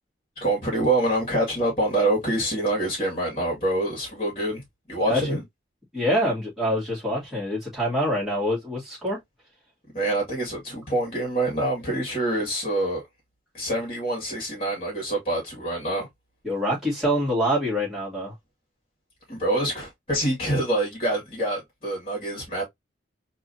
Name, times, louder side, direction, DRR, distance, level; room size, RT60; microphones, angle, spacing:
voice 1, 0.4-4.6 4.9-5.4 9.9-13.0 13.5-16.1 19.3-22.6, right 1 dB, 30° left, 2.0 m, -26 dB
voice 2, 5.1-5.4 5.9-9.2 16.4-18.3, equal, ahead, 2.6 m, -25 dB
4.6 x 2.9 x 2.7 m
head